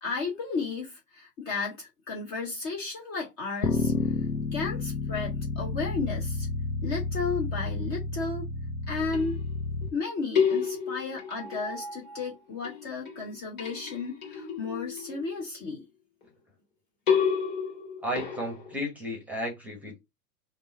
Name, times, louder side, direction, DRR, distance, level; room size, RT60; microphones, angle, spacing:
voice 1, 0.0-3.9 4.5-6.5 6.8-8.5 8.9-9.4 9.9-15.8, left 4 dB, 25° left, 0.8 m, -33 dB
sound 1, 3.6-9.9, left 3 dB, 75° left, 0.8 m, -31 dB
sound 2, 9.0-9.9 10.3-12.3 12.6-15.6 17.1-18.7, left 6 dB, 55° left, 1.9 m, -31 dB
voice 2, 18.0-20.0, equal, 5° right, 1.0 m, -33 dB
3.6 x 2.5 x 4.0 m
figure-of-eight pair, 105°, 48 cm